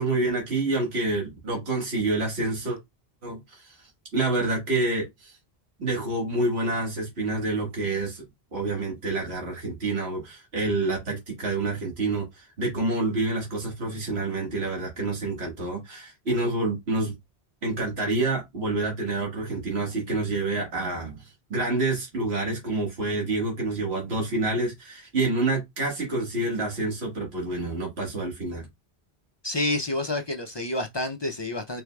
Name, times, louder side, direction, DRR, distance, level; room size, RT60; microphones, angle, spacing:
voice 1, 0.0-2.8 3.2-3.8 4.1-5.3 5.8-8.2 8.5-17.1 17.6-28.7, right 2 dB, 80° right, 1.8 m, -28 dB
voice 2, 29.4-31.8, left 2 dB, 40° left, 0.4 m, -28 dB
4.7 x 3.8 x 2.2 m
omnidirectional pair, 1.1 m